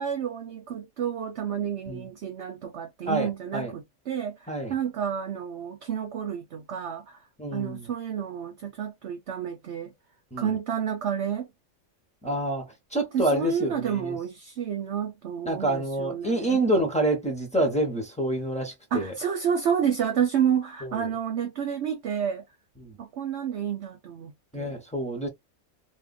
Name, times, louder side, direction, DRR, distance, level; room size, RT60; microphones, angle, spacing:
voice 1, 0.0-7.2 7.5-9.9 10.4-11.5 13.1-16.6 18.9-22.4 23.0-24.8, right 8 dB, 60° right, 0.9 m, -30 dB
voice 2, 3.1-3.7 4.5-4.7 7.4-7.9 10.3-10.5 12.2-14.2 15.4-19.1 20.8-21.0 22.8-23.0 24.5-25.3, right 1 dB, 5° left, 1.1 m, -27 dB
2.6 x 2.5 x 2.5 m
omnidirectional pair, 1.4 m